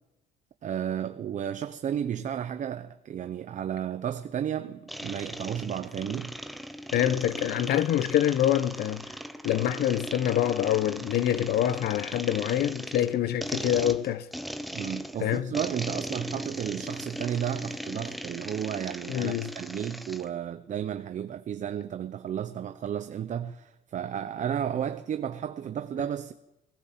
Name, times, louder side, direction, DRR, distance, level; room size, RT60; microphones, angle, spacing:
voice 1, 0.6-6.4 14.7-26.3, right 9 dB, 45° right, 0.9 m, -33 dB
sound 1, 4.9-20.3, equal, ahead, 1.0 m, -38 dB
voice 2, 6.9-9.0 9.4-14.3 15.2-15.5 19.1-19.5, left 11 dB, 70° left, 1.0 m, -26 dB
19.0 x 18.5 x 7.5 m
cardioid pair, 110°, 17 cm